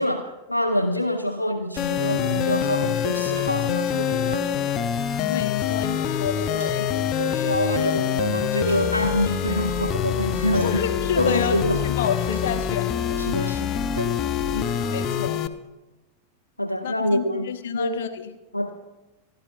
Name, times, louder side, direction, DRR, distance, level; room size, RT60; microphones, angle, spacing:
voice 1, 0.0-4.8 7.2-10.7 11.2-11.8 13.2-14.2 16.6-18.0 18.5-18.7, left 1 dB, 85° left, 6 dB, 0.6 m, -26 dB
sound 1, 1.6-15.4, right 3 dB, 65° right, 4.7 m, -52 dB
sound 2, 1.8-15.5, left 9 dB, 35° left, 0.7 m, -25 dB
voice 2, 5.3-7.0 10.5-13.2 14.4-15.4 16.8-18.3, left 7 dB, 60° left, 8 dB, 1.1 m, -30 dB
27.5 x 11.5 x 2.6 m, 1.1 s
figure-of-eight pair, 90°, 0 cm